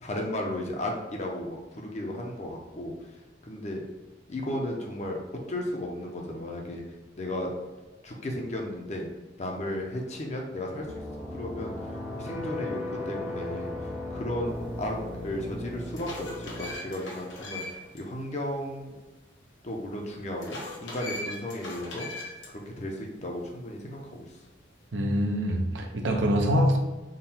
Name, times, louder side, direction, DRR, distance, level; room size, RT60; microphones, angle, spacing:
voice 1, 0.0-2.9 3.4-3.9 4.3-5.2 5.5-6.8 7.2-7.5 8.0-9.1 9.4-10.9 11.3-11.7 12.2-18.9 19.6-22.1 22.5-24.3, left 1 dB, 35° left, 0 dB, 0.6 m, -34 dB
sound 1, 10.8-16.7, left 1 dB, 10° right, 0.6 m, -36 dB
sound 2, 15.0-15.1 15.6-18.0 18.4-18.5 20.4-22.5, left 2 dB, 80° left, 0.9 m, -39 dB
voice 2, 24.9-26.8, equal, 80° right, 2 dB, 0.6 m, -24 dB
3.7 x 2.2 x 4.2 m, 1.1 s
head